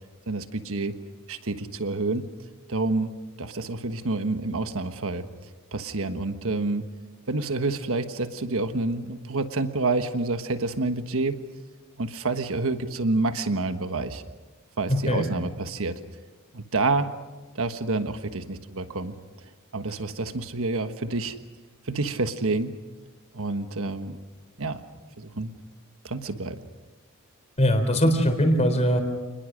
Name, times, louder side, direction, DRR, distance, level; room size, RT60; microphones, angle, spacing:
voice 1, 0.3-0.9 1.3-2.3 2.7-3.1 3.4-5.3 5.7-6.8 7.3-11.4 12.0-14.2 14.8-16.0 16.5-17.1 17.5-19.1 19.7-21.4 21.9-22.7 23.3-24.2 24.6-24.8 25.2-25.5 26.0-26.6, right 3 dB, 65° right, 8 dB, 1.4 m, -28 dB
voice 2, 14.9-15.2 27.6-29.0, equal, 30° left, 5 dB, 3.9 m, -21 dB
29.0 x 20.5 x 6.4 m, 1.2 s
head